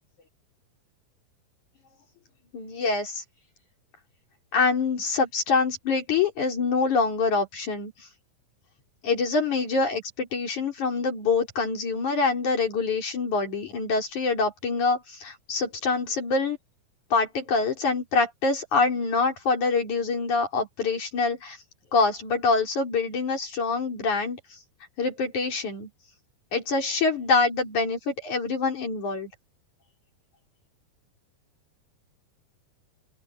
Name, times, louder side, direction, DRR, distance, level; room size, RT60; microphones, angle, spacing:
voice 1, 2.5-3.2 4.5-7.9 9.0-16.6 17.1-21.6 21.9-24.6 25.0-25.9 26.5-29.3, left 4 dB, 50° left, 4.9 m, -25 dB
open air
omnidirectional pair, 4.5 m